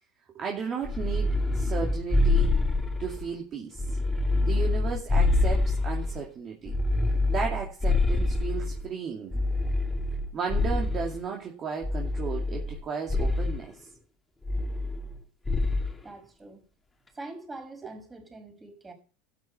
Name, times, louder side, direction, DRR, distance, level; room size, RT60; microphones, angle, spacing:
voice 1, 0.3-2.5 3.0-4.0 4.5-6.8 7.3-9.4 10.3-13.9, right 6 dB, 35° right, 2.5 m, -34 dB
sound 1, 0.8-3.3 3.7-6.2 6.7-8.8 9.3-11.2 11.8-12.8 13.1-13.6 14.4-15.2 15.5-15.9, left 2 dB, 10° left, 2.4 m, -26 dB
voice 2, 16.0-16.7 17.1-18.9, right 2 dB, 20° right, 5.9 m, -43 dB
12.5 x 9.5 x 5.6 m
supercardioid pair, 110°, 0 cm